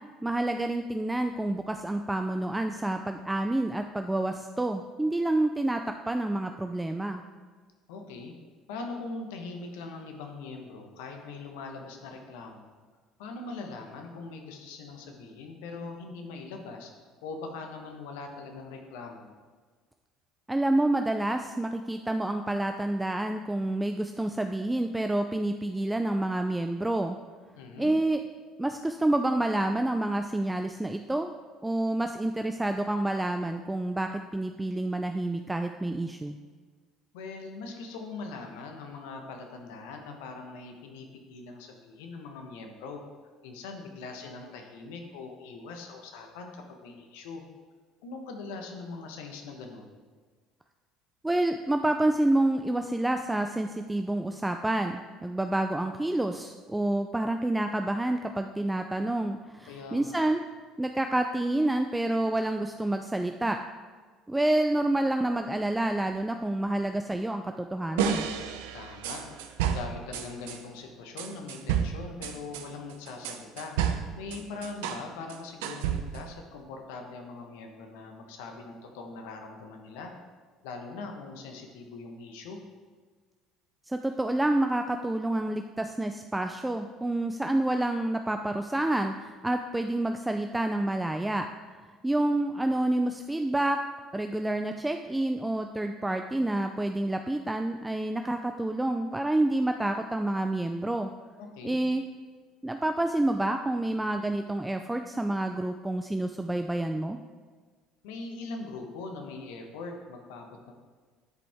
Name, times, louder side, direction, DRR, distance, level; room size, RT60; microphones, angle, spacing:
voice 1, 0.2-7.2 20.5-27.2 27.8-28.2 28.6-31.3 31.6-36.4 51.2-60.4 60.8-63.6 64.3-68.3 83.9-91.5 92.0-93.8 94.1-101.1 101.6-102.0 102.6-107.2, right 1 dB, 10° right, 6 dB, 0.4 m, -28 dB
voice 2, 7.9-8.3 8.7-12.7 13.2-16.9 17.2-19.3 27.5-27.9 37.1-43.0 43.4-47.4 48.0-50.0 59.6-60.2 68.7-80.1 80.6-82.6 101.4-101.8 108.0-110.7, left 3 dB, 75° left, 3 dB, 1.1 m, -41 dB
sound 1, 68.0-70.6 71.2-75.0 75.3-76.3, right 8 dB, 75° right, 0.5 m, -31 dB
10.5 x 5.1 x 3.6 m, 1.5 s
hypercardioid pair, 65°, 0 cm